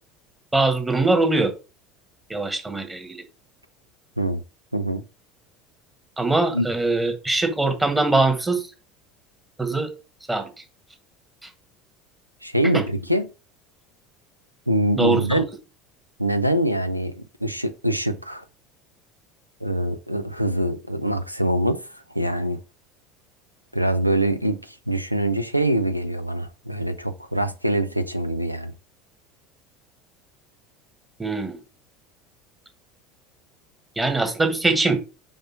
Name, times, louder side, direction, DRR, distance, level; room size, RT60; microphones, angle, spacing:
voice 1, 0.5-1.5 2.3-3.2 6.2-8.7 9.6-9.9 10.3-10.5 11.4-11.5 12.7-12.8 15.0-15.4 31.2-31.6 34.0-35.0, right 3 dB, 10° right, 1.5 m, -22 dB
voice 2, 4.7-5.0 6.5-6.7 12.4-13.3 14.7-15.4 16.2-18.4 19.6-22.6 23.7-28.7, right 1 dB, 90° right, 0.5 m, -24 dB
5.5 x 5.3 x 3.8 m
figure-of-eight pair, 70°, 0 cm